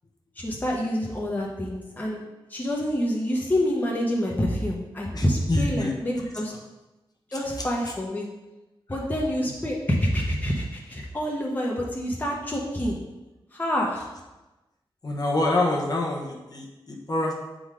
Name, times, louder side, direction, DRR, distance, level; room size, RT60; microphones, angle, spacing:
voice 1, 0.4-2.2 2.5-6.5 7.3-8.3 8.9-13.0 13.5-14.1, equal, 20° left, -3 dB, 1.0 m, -27 dB
voice 2, 5.1-5.9 8.9-9.0 15.0-17.3, left 2 dB, 45° left, -2 dB, 1.2 m, -26 dB
7.9 x 3.9 x 4.9 m, 1.1 s
wide cardioid pair, 130°, 9 cm